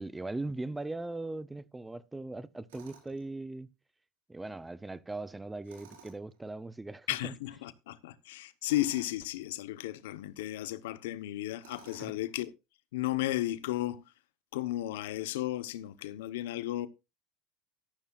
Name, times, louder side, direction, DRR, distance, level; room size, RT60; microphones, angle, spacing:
voice 1, 0.0-3.7 4.3-7.3 12.0-12.1, right 2 dB, 10° right, 0.6 m, -39 dB
Tools, 2.7-3.3 5.6-6.4 8.6-9.2 11.6-12.3, right 6 dB, 90° right, 4.9 m, -55 dB
voice 2, 7.1-12.5 12.9-14.0 14.5-16.9, left 15 dB, 85° left, 0.9 m, -34 dB
13.5 x 11.5 x 2.4 m
supercardioid pair, 100°, 0 cm